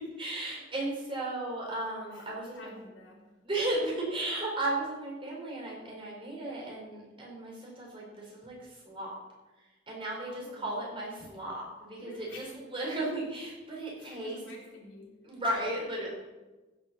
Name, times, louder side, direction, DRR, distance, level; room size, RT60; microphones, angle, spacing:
voice 1, 0.2-2.7 3.4-9.1 9.9-12.4 12.7-14.4 15.2-16.1, right 1 dB, 30° right, -3 dB, 4.7 m, -35 dB
voice 2, 2.1-3.3 10.3-10.7 12.0-12.9 14.0-15.2, left 2 dB, 85° left, -2 dB, 3.4 m, -51 dB
15.0 x 7.0 x 6.2 m, 1.1 s
head